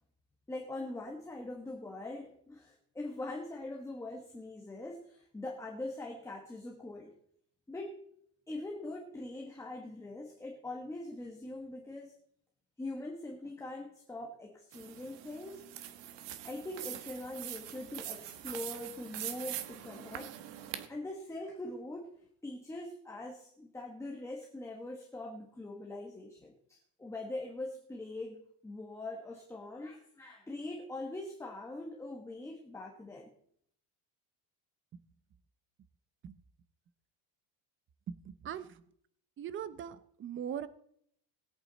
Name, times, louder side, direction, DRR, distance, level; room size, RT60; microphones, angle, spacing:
voice 1, 0.5-7.1 7.7-8.0 8.5-12.1 12.8-15.6 16.4-20.4 20.9-22.1 22.4-33.3, left 2 dB, 5° left, 0 dB, 1.3 m, -42 dB
sound 1, 14.7-20.9, right 12 dB, 70° right, 1.6 m, -43 dB
voice 2, 38.1-38.7 39.4-40.7, right 9 dB, 30° right, 13 dB, 0.7 m, -40 dB
20.5 x 8.8 x 4.1 m, 0.68 s
cardioid pair, 175°, 43 cm